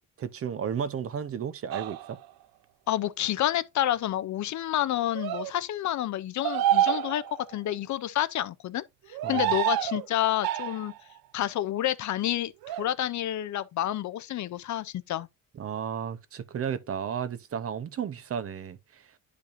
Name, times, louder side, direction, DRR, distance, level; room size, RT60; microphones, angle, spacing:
voice 1, 0.2-2.2 9.2-9.5 15.5-19.0, right 8 dB, 40° right, 0.8 m, -33 dB
sound 1, 1.7-2.2 5.1-5.5 6.4-7.5 9.1-10.1 10.4-11.0 12.6-12.9, right 13 dB, 90° right, 0.7 m, -28 dB
voice 2, 2.9-7.2 7.5-10.9 11.3-12.5 12.8-15.3, left 12 dB, 55° left, 0.6 m, -29 dB
10.5 x 5.1 x 2.6 m
cardioid pair, 130°, 35 cm